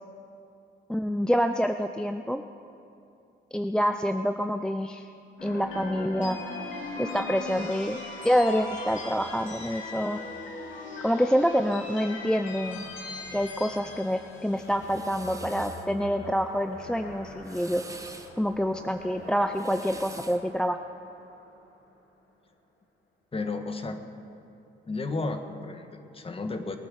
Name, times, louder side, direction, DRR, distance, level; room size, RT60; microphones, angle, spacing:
voice 1, 0.9-2.4 3.5-5.1 5.4-6.4 7.0-10.2 11.0-12.8 13.3-20.8, equal, 5° left, 7 dB, 0.5 m, -27 dB
sound 1, 5.4-21.6, left 2 dB, 70° left, 3.8 m, -40 dB
sound 2, 14.6-15.9 17.2-18.3 19.4-20.5, right 2 dB, 15° right, 1.3 m, -45 dB
voice 2, 23.3-24.0 24.9-26.8, left 3 dB, 30° left, 6 dB, 1.6 m, -33 dB
21.5 x 9.7 x 6.5 m, 2.6 s
cardioid pair, 90°, 20 cm